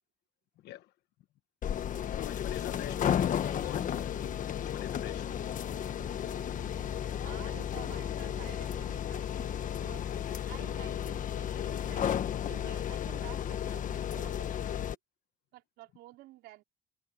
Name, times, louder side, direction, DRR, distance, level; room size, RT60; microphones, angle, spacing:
sound 1, 1.6-14.9, left 9 dB, 50° left, 1.4 m, -33 dB
voice 1, 2.1-5.3, left 14 dB, 80° left, 1.5 m, -45 dB
sound 2, 3.4-10.3, equal, 5° left, 6.4 m, -51 dB
voice 2, 7.2-10.1 10.4-12.1 12.4-15.0 15.5-16.6, right 17 dB, 90° right, 4.6 m, -51 dB
cardioid pair, 110°, 17 cm